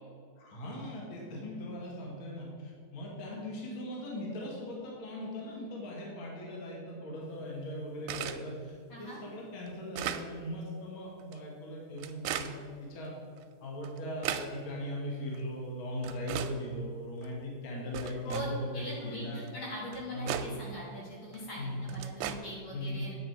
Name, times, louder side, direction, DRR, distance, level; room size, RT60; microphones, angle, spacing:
voice 1, 0.4-13.1 13.6-19.5 20.1-20.4 21.6-21.8 22.7-23.0, left 1 dB, 45° left, -3 dB, 2.2 m, -39 dB
sound 1, 8.1-8.4 9.1-9.2 9.7-10.3 11.2-11.4 12.0-12.5 13.4-13.5 13.8-14.5 15.3-15.4 16.0-16.6 17.2-17.3 17.9-18.5 19.5-19.6 19.9-20.5 21.3-21.4 21.9-22.4, right 10 dB, 80° right, 2.0 m, -36 dB
voice 2, 18.7-19.3 19.5-23.1, equal, 75° left, -5 dB, 4.2 m, -41 dB
9.4 x 8.2 x 4.7 m, 2.2 s
omnidirectional pair, 3.6 m